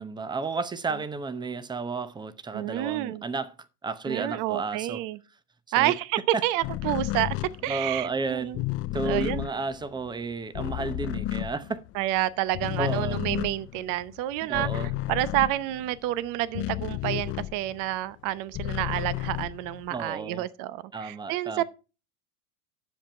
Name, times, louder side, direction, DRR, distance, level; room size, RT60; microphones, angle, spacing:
voice 1, 0.0-3.5 3.8-5.0 5.8-5.9 6.3-6.4 7.7-8.5 8.9-11.8 12.8-13.2 14.4-14.9 19.9-20.5 20.9-21.6, right 4 dB, 10° right, 0.8 m, -32 dB
voice 2, 2.5-3.2 4.1-5.2 5.7-7.4 7.6-8.6 9.0-9.5 11.9-21.6, right 15 dB, 45° right, 0.8 m, -29 dB
deep dub synth wobble, 6.6-12.2 12.5-17.9 18.3-20.1, left 17 dB, 30° left, 0.4 m, -32 dB
10.0 x 7.4 x 4.4 m
hypercardioid pair, 110°, 44 cm